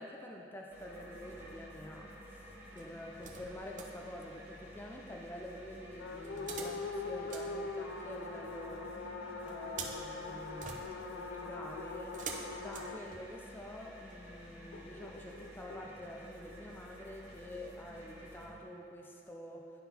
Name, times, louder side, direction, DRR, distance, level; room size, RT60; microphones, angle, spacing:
voice 1, 0.0-9.0 9.4-12.2 12.6-19.7, left 1 dB, 10° left, 0 dB, 0.4 m, -48 dB
sound 1, 0.7-18.5, equal, 10° right, 1.4 m, -52 dB
sound 2, 1.4-1.9 2.8-4.0 6.2-8.4 9.5-13.6 14.1-14.2, right 5 dB, 45° right, 0.7 m, -48 dB
sound 3, 6.0-13.0 14.7-15.8, left 3 dB, 70° left, 0.5 m, -42 dB
11.0 x 3.9 x 4.2 m, 2.8 s
head